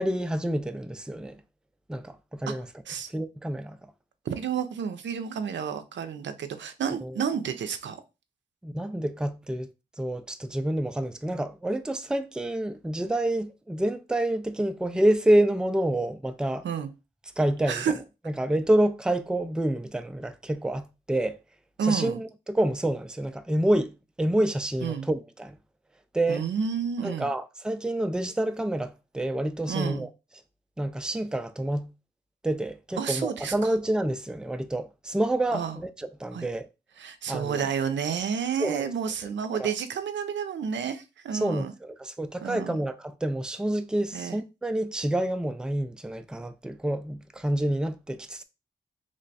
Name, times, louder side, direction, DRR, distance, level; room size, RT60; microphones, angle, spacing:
voice 1, 0.0-1.4 1.9-2.7 3.1-3.8 7.0-7.1 8.6-9.7 10.0-16.7 17.4-18.0 18.3-21.4 21.8-25.6 26.1-26.4 27.0-30.1 30.8-31.9 32.4-36.7 37.3-37.7 38.6-38.9 39.5-39.7 41.3-48.4, right 1 dB, 5° right, 0.4 m, -28 dB
voice 2, 4.3-8.0 16.6-16.9 17.7-17.9 21.8-22.2 24.8-25.1 26.3-27.3 29.7-30.1 33.0-33.7 35.5-35.8 36.3-36.5 37.0-41.7 42.4-42.8 44.1-44.4, right 7 dB, 90° right, 0.4 m, -30 dB
3.2 x 2.2 x 3.9 m
cardioid pair, 60°, 18 cm